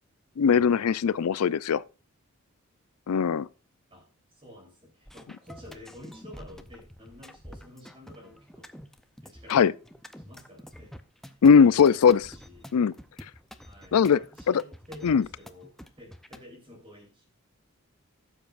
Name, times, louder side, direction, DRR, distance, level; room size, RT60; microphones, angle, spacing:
voice 1, 0.4-1.8 3.1-3.5 9.5-9.7 11.4-12.2 12.7-12.9 13.9-14.2 15.0-15.2, left 6 dB, 90° left, 0.4 m, -19 dB
voice 2, 3.9-8.6 9.2-9.9 10.2-12.8 13.6-17.2, left 1 dB, 25° right, 3.6 m, -50 dB
sound 1, 5.1-16.4, equal, ahead, 0.5 m, -48 dB
16.5 x 7.2 x 2.5 m
head